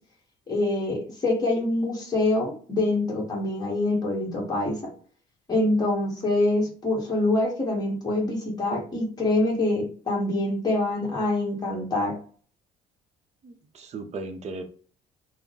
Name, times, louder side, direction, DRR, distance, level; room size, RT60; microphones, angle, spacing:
voice 1, 0.5-4.9 5.5-12.2, left 2 dB, 25° left, -2 dB, 1.5 m, -25 dB
voice 2, 13.4-14.6, right 3 dB, 40° right, 6 dB, 0.7 m, -36 dB
3.5 x 2.1 x 3.8 m, 0.43 s
cardioid pair, 110°, 17 cm